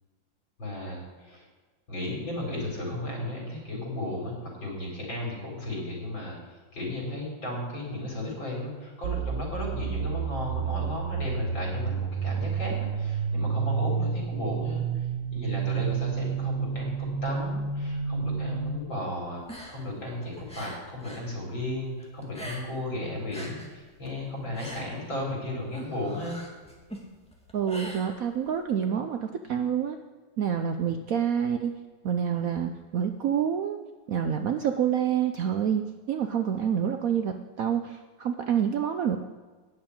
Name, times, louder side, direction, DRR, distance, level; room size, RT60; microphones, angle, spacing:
voice 1, 0.6-1.4 1.9-19.4 19.7-26.4, left 1 dB, 80° left, -2 dB, 5.0 m, -35 dB
sound 1, 9.0-18.8, right 6 dB, 85° right, 1.5 m, -30 dB
sound 2, 19.4-21.3 21.6-22.9 23.2-28.6, equal, 5° left, 1.9 m, -43 dB
voice 2, 27.5-30.0 30.4-31.7 32.0-33.8 34.1-39.2, right 8 dB, 70° right, 7 dB, 0.8 m, -27 dB
9.6 x 7.8 x 8.8 m, 1.3 s
omnidirectional pair, 2.1 m